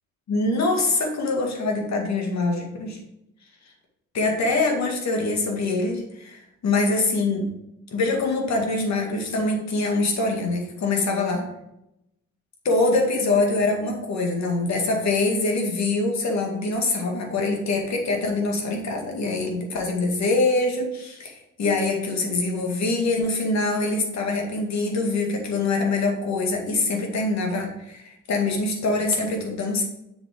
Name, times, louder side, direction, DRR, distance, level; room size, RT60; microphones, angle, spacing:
voice 1, 0.3-3.0 4.1-7.4 7.9-11.4 12.6-29.8, left 3 dB, 65° left, 2 dB, 2.1 m, -24 dB
7.4 x 6.9 x 3.8 m, 0.84 s
cardioid pair, 90°, 30 cm